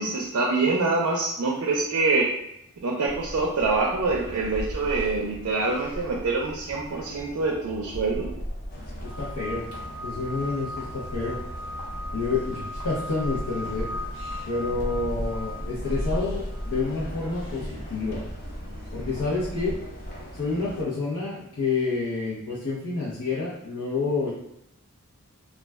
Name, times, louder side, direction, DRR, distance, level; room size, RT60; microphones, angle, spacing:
voice 1, 0.0-2.3 2.8-8.3, right 3 dB, 75° right, -1 dB, 0.4 m, -25 dB
sound 1, 3.1-20.2, equal, 65° left, 1.0 m, -37 dB
sound 2, 8.7-20.8, left 1 dB, 40° left, 0.5 m, -42 dB
voice 2, 9.0-9.6 10.0-11.4 12.1-13.9 14.5-18.2 18.9-19.7 20.4-24.3, left 3 dB, 90° left, -9 dB, 0.7 m, -29 dB
sound 3, 9.0-16.8, left 1 dB, 20° right, 0.5 m, -39 dB
2.3 x 2.1 x 3.3 m, 0.81 s
head